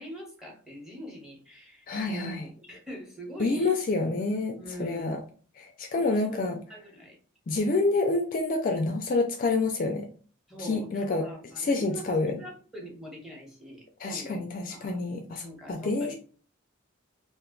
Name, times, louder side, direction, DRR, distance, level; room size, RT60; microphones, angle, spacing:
voice 1, 0.0-3.8 4.6-5.1 6.0-7.2 10.5-15.0 15.3-16.1, equal, ahead, -1 dB, 0.9 m, -43 dB
voice 2, 1.9-2.4 3.4-5.2 5.6-6.6 7.5-10.1 10.6-11.2 11.6-12.4 14.0-16.1, left 3 dB, 40° left, 4 dB, 0.4 m, -28 dB
2.5 x 2.2 x 3.7 m, 0.40 s
head